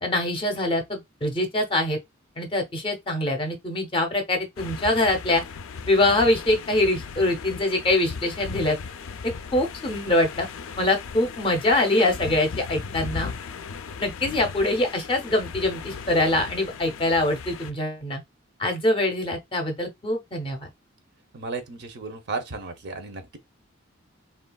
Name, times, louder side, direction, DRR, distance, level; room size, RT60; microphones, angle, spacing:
voice 1, 0.0-2.0 2.4-5.4 5.9-8.8 9.5-10.5 10.8-13.3 14.0-18.2 18.6-20.7, left 1 dB, 25° left, 0.6 m, -24 dB
sound 1, 4.6-17.7, left 5 dB, 80° left, 0.4 m, -37 dB
voice 2, 21.3-23.4, right 3 dB, 55° right, 0.6 m, -34 dB
3.1 x 2.3 x 2.2 m
head